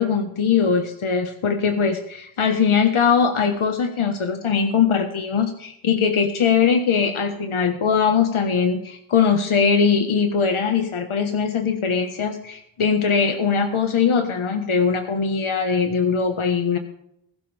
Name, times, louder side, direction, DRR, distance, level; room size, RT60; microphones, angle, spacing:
voice 1, 0.0-16.8, left 6 dB, 85° left, 5 dB, 1.5 m, -21 dB
21.0 x 12.0 x 3.5 m, 0.75 s
wide cardioid pair, 130°, 48 cm